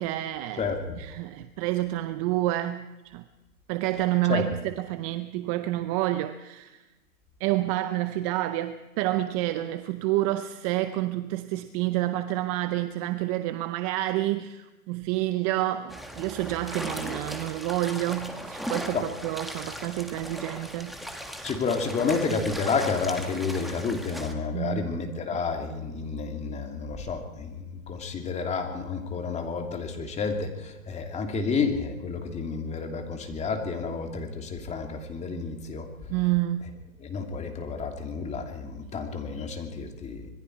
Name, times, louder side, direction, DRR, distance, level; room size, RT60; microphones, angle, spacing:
voice 1, 0.0-0.7 1.0-3.2 3.7-6.9 7.4-21.0 24.5-24.9 25.3-25.4 36.1-36.6, right 15 dB, 25° right, 0.6 m, -29 dB
voice 2, 0.6-1.0 4.3-4.4 18.9-19.1 21.4-35.9 37.0-40.3, left 4 dB, 15° left, 2.7 m, -30 dB
sound 1, 15.9-24.3, equal, ahead, 1.6 m, -37 dB
26.0 x 21.5 x 4.6 m
hypercardioid pair, 130°, 43 cm